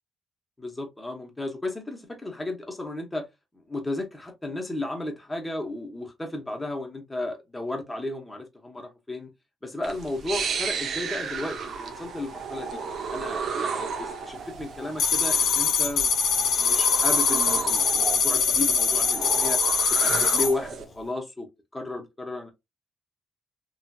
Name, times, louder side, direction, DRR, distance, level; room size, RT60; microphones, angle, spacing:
voice 1, 0.6-3.3 3.7-9.3 9.6-12.8 13.1-19.6 19.9-21.5 21.7-22.5, left 2 dB, 10° left, 0.9 m, -34 dB
sound 1, 9.8-20.8, right 5 dB, 65° right, 0.6 m, -33 dB
sound 2, 15.0-20.5, left 6 dB, 70° left, 0.7 m, -23 dB
3.0 x 2.8 x 2.2 m
cardioid pair, 110°, 0 cm